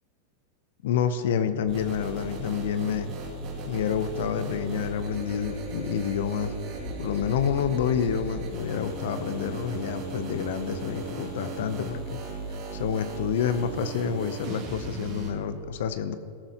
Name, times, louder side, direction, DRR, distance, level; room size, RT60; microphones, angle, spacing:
voice 1, 0.8-3.1 3.7-6.5 7.0-12.0 12.7-16.2, left 8 dB, 70° left, 11 dB, 0.7 m, -28 dB
sound 1, 1.7-15.3, right 3 dB, 50° right, 2.3 m, -36 dB
13.5 x 13.0 x 3.0 m, 2.4 s
hypercardioid pair, 110°, 0 cm